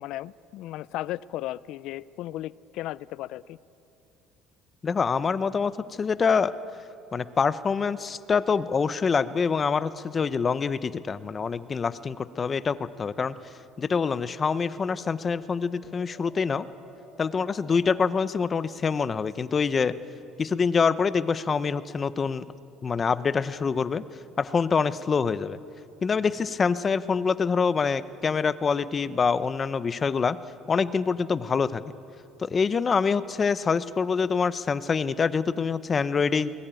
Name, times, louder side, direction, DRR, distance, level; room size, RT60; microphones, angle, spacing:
voice 1, 0.0-3.6, left 14 dB, 70° left, 19 dB, 0.5 m, -35 dB
voice 2, 4.8-5.7 6.0-6.5 7.1-13.3 13.8-16.7 17.2-19.9 20.4-22.4 22.8-24.0 24.4-25.6 26.0-30.4 30.7-31.8 32.4-36.5, left 5 dB, 30° left, 14 dB, 0.8 m, -25 dB
sound 1, 8.5-18.4, right 1 dB, 15° right, 7.4 m, -56 dB
23.5 x 20.0 x 9.1 m, 2.7 s
cardioid pair, 115°, 0 cm